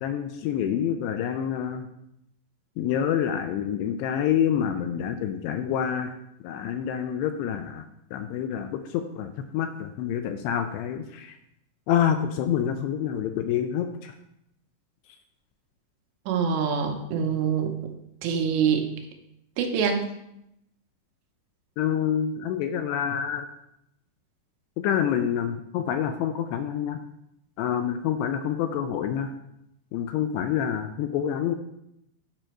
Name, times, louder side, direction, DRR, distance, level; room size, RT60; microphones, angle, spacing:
voice 1, 0.0-1.9 2.8-6.1 6.4-7.9 8.1-11.4 11.9-14.1 21.8-23.5 24.8-27.0 27.6-29.3 29.9-31.6, left 9 dB, 80° left, 7 dB, 2.5 m, -27 dB
voice 2, 16.3-17.7 18.2-18.8 19.6-20.0, right 6 dB, 85° right, 3 dB, 3.1 m, -24 dB
9.0 x 5.1 x 4.4 m, 0.80 s
omnidirectional pair, 5.2 m